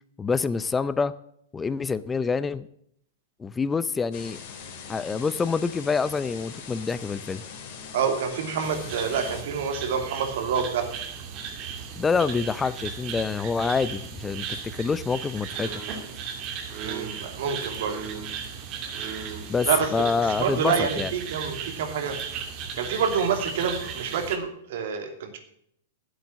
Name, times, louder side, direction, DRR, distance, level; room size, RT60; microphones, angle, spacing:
voice 1, 0.2-1.1 1.5-2.7 3.4-4.4 4.9-7.4 12.0-15.8 19.5-21.1, left 5 dB, 15° left, 15 dB, 0.5 m, -26 dB
sound 1, 4.1-9.4, left 6 dB, 50° left, 3.2 m, -41 dB
voice 2, 7.9-10.9 16.8-18.1 19.6-19.9 20.2-22.2 22.7-25.4, right 6 dB, 65° right, 5 dB, 2.8 m, -27 dB
sound 2, 8.6-24.4, right 6 dB, 40° right, 2.5 m, -36 dB
12.0 x 8.1 x 7.2 m, 0.70 s
hypercardioid pair, 115°, 0 cm